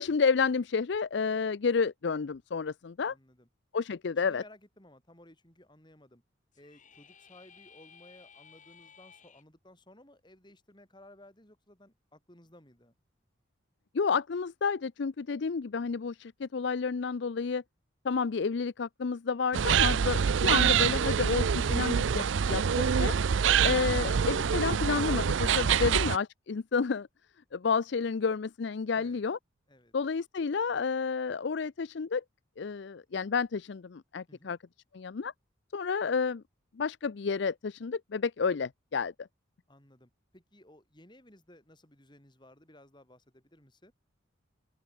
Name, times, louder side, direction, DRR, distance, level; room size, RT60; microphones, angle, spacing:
voice 1, 0.0-3.1 3.7-4.4 13.9-17.6 18.0-22.6 23.0-23.1 23.6-27.1 27.5-29.4 29.9-32.2 32.6-34.6 34.9-35.3 35.7-36.4 36.8-39.3, left 5 dB, 60° left, 0.5 m, -30 dB
voice 2, 3.1-3.5 4.2-6.2 6.5-12.9 29.0-29.2 29.7-29.9 34.3-34.6 39.7-43.9, left 1 dB, 25° left, 4.9 m, -57 dB
sound 1, 6.5-9.4, left 7 dB, 40° left, 5.8 m, -56 dB
sound 2, 19.5-26.2, right 7 dB, 70° right, 0.5 m, -26 dB
open air
head